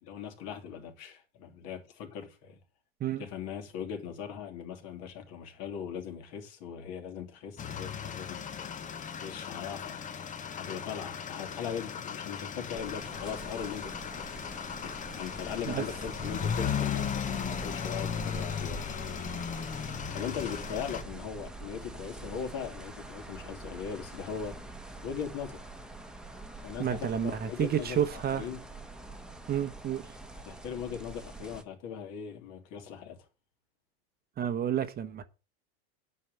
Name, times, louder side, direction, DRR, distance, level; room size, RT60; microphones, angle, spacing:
voice 1, 0.0-2.6 3.2-8.7 9.2-10.0 10.6-14.4 14.8-19.0 19.3-19.5 20.1-24.6 25.0-25.6 26.6-28.6 30.3-33.2, left 7 dB, 55° left, 3.0 m, -39 dB
sound 1, 7.6-21.0, left 7 dB, 25° left, 1.1 m, -36 dB
sound 2, 12.7-31.6, right 2 dB, ahead, 1.3 m, -45 dB
voice 2, 26.8-28.4 29.5-30.0 34.4-35.2, right 9 dB, 30° right, 1.1 m, -30 dB
9.3 x 5.7 x 7.9 m
hypercardioid pair, 115°, 32 cm